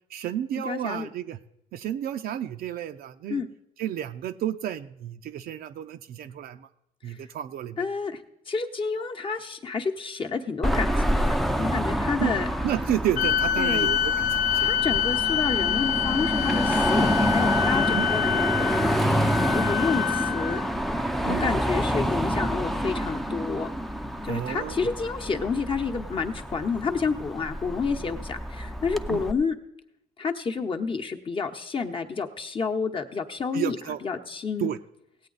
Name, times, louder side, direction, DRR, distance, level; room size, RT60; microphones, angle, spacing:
voice 1, 0.1-1.4 1.7-3.4 3.8-6.7 7.0-7.8 12.2-12.4 12.6-14.7 17.9-18.1 21.3-21.5 24.3-24.8 29.1-29.2 33.5-34.0 34.6-34.8, right 11 dB, 65° right, 8 dB, 0.5 m, -31 dB
voice 2, 0.6-1.1 3.3-3.5 7.0-7.2 7.8-8.2 8.5-12.5 13.6-13.9 14.6-18.8 19.5-20.6 21.3-23.7 24.2-29.5 30.2-34.7, left 5 dB, 30° left, 4 dB, 0.9 m, -29 dB
Car passing by / Traffic noise roadway noise / Engine, 10.6-29.3, equal, ahead, 0.5 m, -27 dB
sound 1, 13.1-20.6, left 9 dB, 50° left, 0.6 m, -26 dB
17.0 x 8.4 x 4.0 m, 0.81 s
cardioid pair, 110°, 17 cm